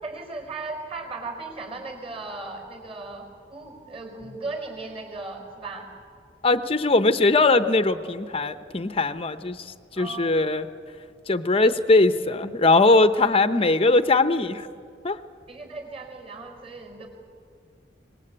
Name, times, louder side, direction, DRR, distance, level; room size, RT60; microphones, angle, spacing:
voice 1, 0.0-5.9 10.0-10.5 15.5-17.1, right 3 dB, 30° right, 4 dB, 4.7 m, -37 dB
voice 2, 6.4-9.6 10.0-10.7 11.3-14.7 15.0-15.2, left 3 dB, 30° left, 10 dB, 0.8 m, -20 dB
24.5 x 20.5 x 8.8 m, 2.2 s
head